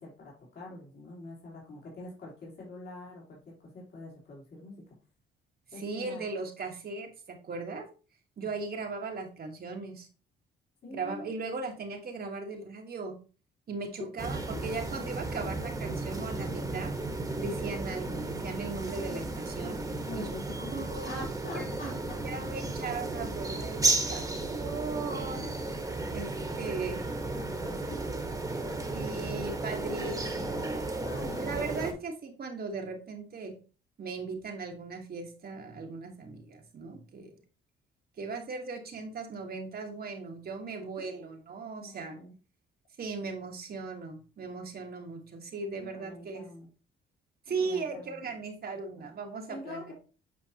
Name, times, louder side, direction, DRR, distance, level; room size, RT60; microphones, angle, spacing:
voice 1, 0.0-4.8 5.7-6.2 8.4-8.5 10.8-11.3 14.0-14.1 20.0-22.2 26.1-26.4 27.3-28.0 28.7-29.3 29.7-29.8 31.0-31.6 31.9-32.0 41.0-41.2 41.8-42.3 45.7-46.7 47.6-48.3 49.0-49.1 49.5-49.9, left 2 dB, 55° left, -4 dB, 3.4 m, -45 dB
voice 2, 5.8-7.9 8.4-10.1 10.9-13.2 13.7-16.9 17.4-19.8 20.1-20.3 20.7-21.2 21.5-21.9 22.2-25.5 26.1-27.0 28.9-30.9 31.2-33.6 34.0-37.4 38.2-42.2 43.0-46.5 47.5-49.8, right 4 dB, 50° right, 3 dB, 1.4 m, -38 dB
sound 1, 14.2-31.9, right 2 dB, 15° right, 1.4 m, -34 dB
8.8 x 4.5 x 2.9 m, 0.35 s
cardioid pair, 90°, 20 cm